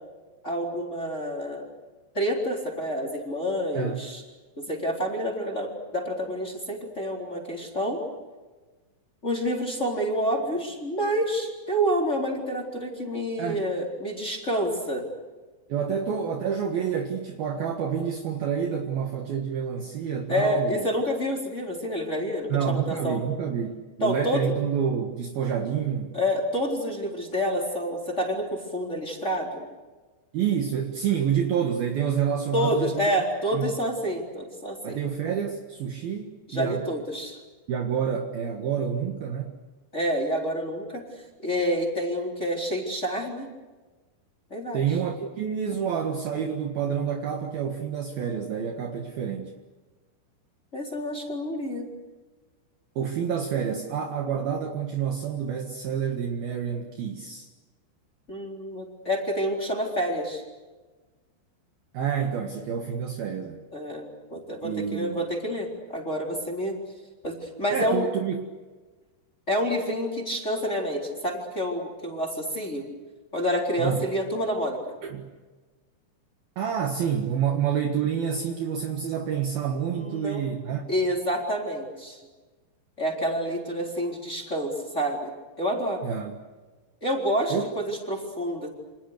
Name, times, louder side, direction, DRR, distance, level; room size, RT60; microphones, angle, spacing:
voice 1, 0.4-1.7 2.1-4.2 4.6-8.0 9.2-15.0 20.3-23.2 24.0-24.5 26.1-29.6 32.5-35.0 36.5-37.4 39.9-43.5 44.5-44.8 50.7-51.9 58.3-60.4 63.7-66.8 67.2-68.1 69.5-72.8 73.3-74.8 79.9-80.4 80.9-82.2 83.0-85.3 85.6-86.0 87.0-88.7, equal, 15° left, 0 dB, 3.9 m, -28 dB
voice 2, 15.7-20.9 22.5-26.1 30.3-33.1 33.5-33.7 34.8-36.8 37.7-39.6 44.7-49.5 53.0-57.5 61.9-63.6 64.6-65.2 67.7-68.4 73.8-74.0 75.0-75.3 76.6-80.8 86.0-86.3 87.5-87.6, right 8 dB, 60° right, 3 dB, 3.1 m, -28 dB
29.5 x 26.5 x 6.7 m, 1.3 s
omnidirectional pair, 5.4 m